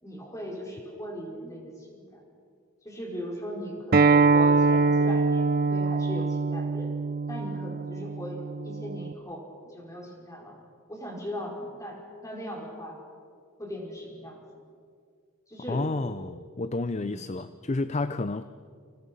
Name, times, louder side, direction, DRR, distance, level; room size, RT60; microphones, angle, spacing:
voice 1, 0.0-2.2 2.8-6.9 7.3-8.4 8.6-10.6 10.9-13.0 13.6-14.4 15.5-15.9 17.0-17.2, equal, 15° left, -1 dB, 5.4 m, -38 dB
Acoustic guitar, 3.9-9.1, right 4 dB, 40° right, 0.7 m, -23 dB
voice 2, 15.7-18.4, left 2 dB, 30° left, 12 dB, 0.5 m, -30 dB
29.5 x 27.0 x 5.6 m, 2.2 s
head